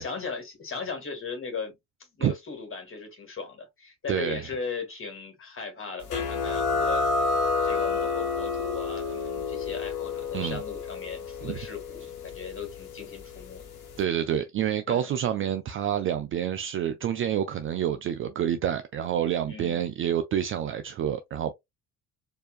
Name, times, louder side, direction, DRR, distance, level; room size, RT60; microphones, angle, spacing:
voice 1, 0.0-1.8 2.1-7.0 7.6-13.7 14.9-15.1 19.5-19.8, left 5 dB, 30° left, 1.8 m, -37 dB
voice 2, 4.1-4.4 10.3-10.6 11.4-11.6 14.0-21.5, right 10 dB, 30° right, 0.4 m, -28 dB
sound 1, 6.1-13.4, left 4 dB, 75° left, 1.3 m, -29 dB
4.3 x 2.7 x 2.3 m
figure-of-eight pair, 50°, 45 cm